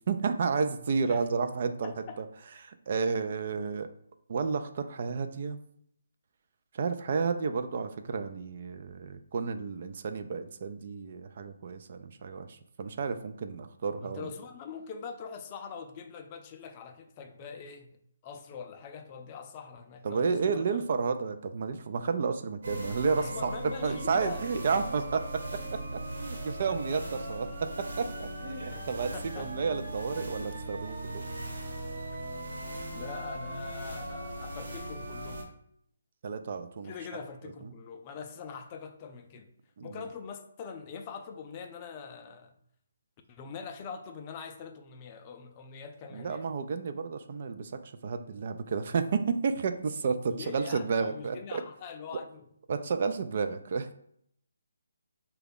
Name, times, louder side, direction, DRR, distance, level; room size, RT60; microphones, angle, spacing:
voice 1, 0.1-1.9 2.2-2.3 2.6-3.9 4.3-5.6 6.7-14.3 20.0-23.5 23.8-25.2 25.7-31.2 36.2-36.9 39.8-40.0 46.1-51.6 52.7-53.9, right 5 dB, 50° right, 0.3 m, -31 dB
voice 2, 1.0-1.5 1.8-2.2 14.0-20.9 23.0-24.4 26.7-26.8 28.7-29.5 32.1-32.2 32.9-35.5 36.8-39.5 39.8-42.6 43.3-46.5 50.3-52.5, left 6 dB, 30° left, 0.4 m, -43 dB
sound 1, 22.6-35.4, right 1 dB, 70° right, 1.0 m, -38 dB
3.8 x 2.3 x 3.5 m
figure-of-eight pair, 150°, 0 cm